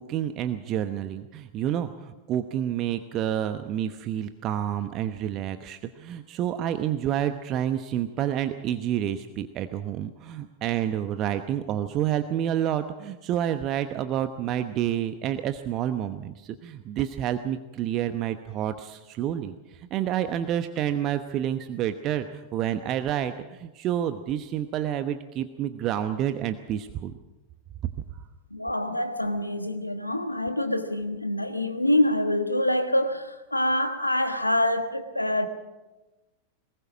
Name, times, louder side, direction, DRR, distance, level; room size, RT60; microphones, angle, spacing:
voice 1, 0.0-27.1, right 10 dB, 35° right, 1.0 m, -29 dB
voice 2, 28.5-35.5, left 1 dB, 85° left, 1.5 m, -25 dB
21.5 x 20.0 x 6.3 m
figure-of-eight pair, 90°, 0 cm